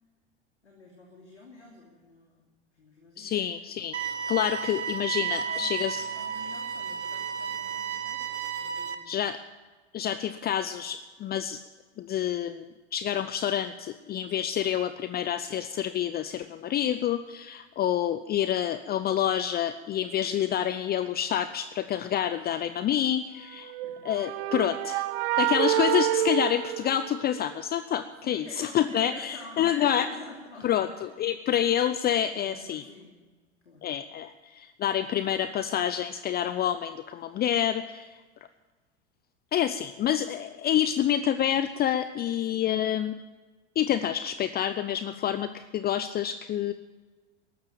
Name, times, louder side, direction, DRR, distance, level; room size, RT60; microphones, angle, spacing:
voice 1, 0.6-2.4 2.7-3.6 5.4-8.3 8.6-9.3 23.8-24.4 28.2-31.3 32.3-33.2 33.6-33.9 42.4-42.7, left 2 dB, 85° left, -1 dB, 3.1 m, -47 dB
voice 2, 3.2-3.9 4.3-6.0 9.1-9.4 9.9-11.6 12.0-12.7 12.9-23.7 24.0-25.0 25.4-30.1 30.6-32.8 33.8-38.2 39.5-43.1 43.8-46.7, left 10 dB, 30° left, 12 dB, 0.7 m, -28 dB
sound 1, 3.9-9.0, right 7 dB, 80° right, 1.4 m, -33 dB
sound 2, 23.7-27.6, right 13 dB, 60° right, 0.8 m, -28 dB
14.0 x 12.0 x 7.4 m, 1.3 s
figure-of-eight pair, 80°, 34 cm